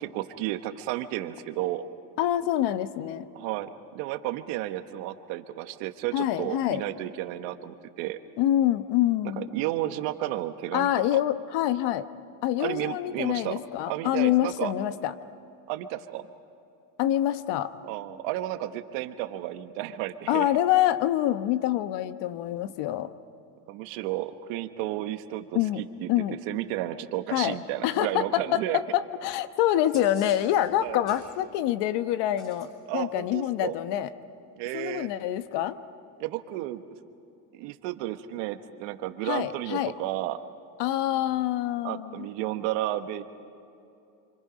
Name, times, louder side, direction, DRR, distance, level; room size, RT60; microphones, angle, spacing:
voice 1, 0.0-1.9 3.3-8.2 9.4-11.2 12.6-13.6 13.9-14.7 15.7-16.3 17.8-20.5 23.7-26.1 26.5-28.8 30.8-31.0 32.9-33.8 34.6-35.1 36.2-36.8 37.5-40.4 41.8-43.2, right 14 dB, 80° right, 8 dB, 1.4 m, -32 dB
voice 2, 2.2-3.3 6.1-6.8 8.4-9.5 10.7-12.1 12.4-15.1 17.0-17.7 20.3-23.1 25.5-25.8 26.1-26.4 27.3-34.1 34.7-35.8 39.2-39.9 40.8-42.3, left 12 dB, 70° left, 12 dB, 1.2 m, -26 dB
sound 1, 29.9-31.3 32.3-32.7 34.8-34.9, left 2 dB, 30° left, 7.9 m, -47 dB
28.0 x 25.0 x 5.2 m, 2.7 s
supercardioid pair, 105°, 43 cm